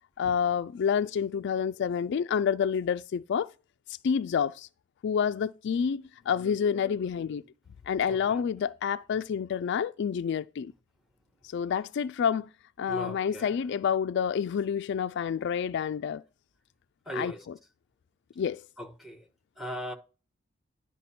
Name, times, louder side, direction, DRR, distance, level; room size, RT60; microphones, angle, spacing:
voice 1, 0.2-3.5 4.0-4.7 5.0-7.4 7.9-10.7 11.4-12.5 12.8-16.2 17.1-17.5 18.4-18.6, left 7 dB, 60° left, 0.3 m, -28 dB
voice 2, 8.0-8.4 12.9-13.6 17.1-17.5 18.8-19.3 19.6-19.9, equal, ahead, 1.4 m, -38 dB
10.5 x 5.7 x 4.3 m
head